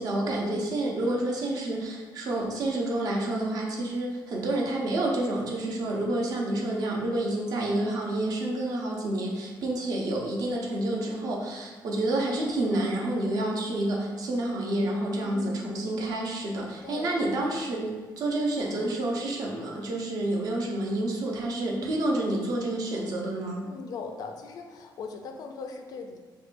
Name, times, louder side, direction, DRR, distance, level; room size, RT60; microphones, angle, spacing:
voice 1, 0.0-23.7, right 1 dB, 50° right, -1 dB, 0.6 m, -29 dB
voice 2, 5.6-6.0 15.2-15.8 16.8-17.3 21.6-22.0 23.6-26.2, left 4 dB, 50° left, 4 dB, 0.3 m, -40 dB
4.7 x 2.2 x 2.5 m, 1.3 s
cardioid pair, 180°, 8 cm